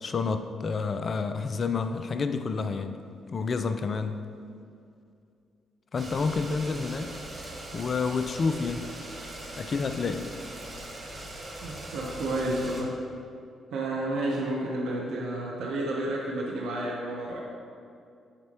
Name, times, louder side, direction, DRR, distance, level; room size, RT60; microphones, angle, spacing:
voice 1, 0.0-3.0 3.3-4.2 5.9-7.1 7.7-8.9 9.6-10.3, left 4 dB, 45° left, 9 dB, 0.5 m, -29 dB
sound 1, 6.0-12.8, right 1 dB, 40° right, 1.4 m, -41 dB
voice 2, 11.6-13.0 13.7-17.4, right 1 dB, 70° right, -3 dB, 0.9 m, -31 dB
10.5 x 4.3 x 2.9 m, 2.4 s
hypercardioid pair, 45°, 0 cm